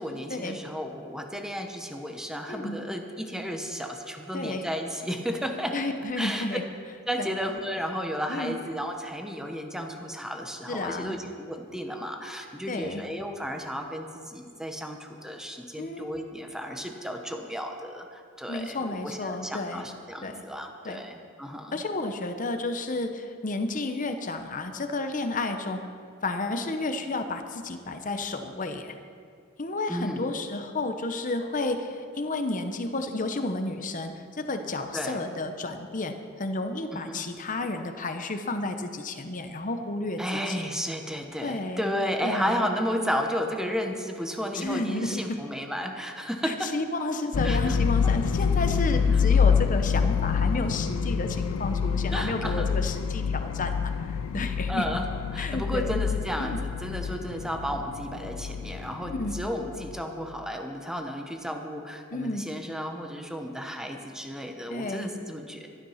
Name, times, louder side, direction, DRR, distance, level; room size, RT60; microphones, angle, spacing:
voice 1, 0.0-5.8 6.2-6.5 7.1-21.8 29.9-30.3 34.9-35.2 36.9-37.2 40.2-46.7 47.4-47.8 52.1-52.7 54.7-65.7, equal, 5° right, 3 dB, 0.9 m, -33 dB
voice 2, 2.5-2.8 4.3-4.6 5.7-6.6 7.2-7.3 8.3-8.6 10.7-11.2 12.7-13.0 15.8-16.1 18.5-19.8 20.2-20.4 20.8-21.0 21.7-25.8 26.2-28.9 29.6-40.6 41.4-41.9 42.2-42.7 44.5-45.4 46.4-54.9 55.4-56.0 56.4-56.6 59.1-59.4 62.1-62.5 64.7-65.1, left 2 dB, 40° left, 7 dB, 0.9 m, -31 dB
sound 1, 47.3-60.2, left 6 dB, 75° left, 0.4 m, -27 dB
12.5 x 11.5 x 5.7 m, 2.3 s
head